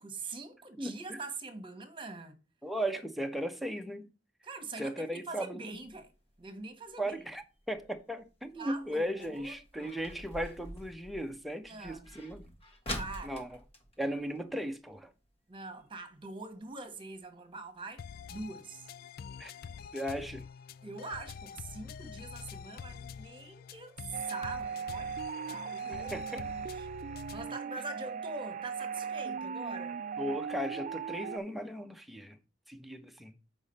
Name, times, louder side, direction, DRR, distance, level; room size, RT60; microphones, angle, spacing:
voice 1, 0.0-2.3 4.4-6.1 6.4-7.2 8.5-9.9 11.6-12.1 12.9-13.4 15.5-18.0 18.3-18.9 20.8-25.1 25.5-26.2 26.7-26.9 27.3-30.0, right 3 dB, 30° right, 1.4 m, -43 dB
voice 2, 0.8-1.2 2.6-4.1 4.8-5.8 7.0-12.4 13.2-13.6 14.0-15.1 19.4-19.5 19.9-20.4 26.1-26.4 30.2-32.4 32.7-33.3, equal, ahead, 0.8 m, -37 dB
sound 1, 5.7-15.0 15.3-15.4 15.7-16.0 16.5-16.6 17.2-17.3 17.5-17.6 18.0-18.1, left 1 dB, 35° left, 1.5 m, -46 dB
sound 2, 18.0-27.6, left 6 dB, 55° left, 0.3 m, -46 dB
sound 3, 24.1-31.4, right 6 dB, 45° right, 0.3 m, -38 dB
7.1 x 5.1 x 4.1 m
head